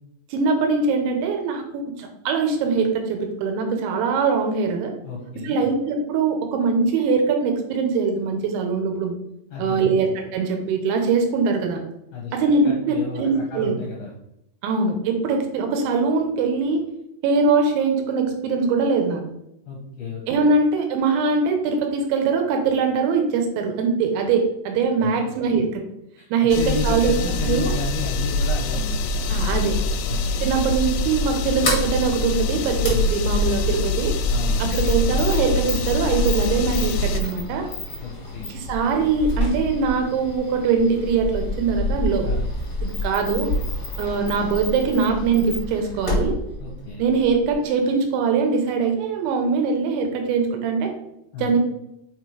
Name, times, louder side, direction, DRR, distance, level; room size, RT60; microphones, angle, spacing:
voice 1, 0.3-4.9 5.4-9.2 9.6-11.8 12.3-13.7 14.6-16.8 17.2-19.2 20.3-25.8 26.3-27.2 27.5-27.7 29.3-29.8 30.4-34.1 34.6-37.7 38.5-42.3 42.8-43.5 44.0-46.3 47.0-50.9 51.4-51.6, right 4 dB, 75° right, 4 dB, 3.1 m, -22 dB
voice 2, 5.0-5.6 9.5-10.0 12.1-12.3 12.6-14.1 19.7-20.5 25.0-25.3 26.2-29.1 30.1-30.6 32.9-33.1 34.3-34.8 38.0-38.5 42.2-42.5 46.6-47.0 51.3-51.6, left 5 dB, 75° left, -2 dB, 2.3 m, -32 dB
sound 1, 26.5-37.2, left 2 dB, 90° left, 3.2 m, -24 dB
Sliding door, 31.3-47.7, left 1 dB, 55° left, 0.9 m, -30 dB
7.4 x 4.4 x 4.8 m, 0.83 s
omnidirectional pair, 5.6 m